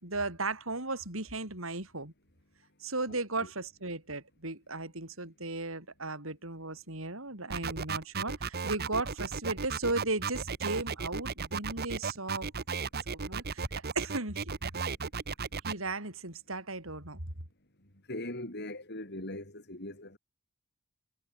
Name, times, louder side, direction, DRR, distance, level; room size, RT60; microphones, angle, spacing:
voice 1, 0.0-2.1 2.8-12.5 13.1-14.4 14.7-14.9 15.6-17.2, right 2 dB, 70° right, 6.5 m, -36 dB
voice 2, 3.1-3.5 18.1-20.2, left 1 dB, 50° left, 7.9 m, -40 dB
sound 1, 7.5-15.7, right 5 dB, 50° right, 1.1 m, -35 dB
head